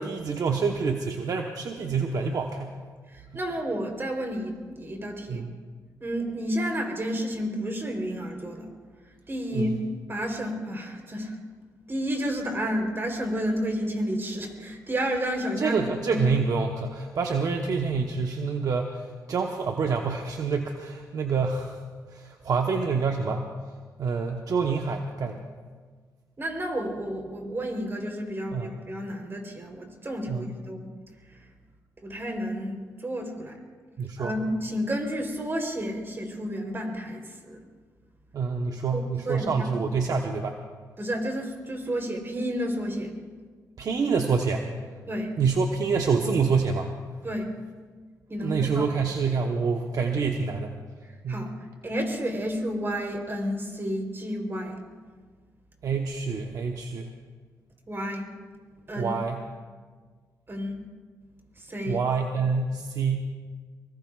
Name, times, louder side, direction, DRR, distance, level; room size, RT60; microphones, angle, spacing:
voice 1, 0.0-2.8 5.3-5.6 9.5-9.8 15.6-21.8 22.1-23.5 24.0-25.4 28.5-28.7 30.3-30.5 34.0-34.3 38.3-40.6 43.8-44.6 45.4-46.9 48.4-50.7 51.2-51.5 55.8-57.1 59.0-59.5 61.9-63.3, right 5 dB, 65° right, 3 dB, 1.0 m, -27 dB
voice 2, 3.1-5.5 6.0-8.7 9.3-9.8 10.1-11.4 11.9-16.2 26.4-30.9 31.3-31.4 32.0-33.6 34.2-37.6 38.9-39.7 41.0-43.1 45.1-45.3 47.2-47.5 48.3-49.0 51.3-51.5 51.8-54.8 57.9-58.3 58.9-59.2 60.5-60.8 61.6-62.0, equal, 35° right, 2 dB, 3.6 m, -31 dB
24.0 x 21.5 x 2.4 m, 1.5 s
cardioid pair, 75°, 7 cm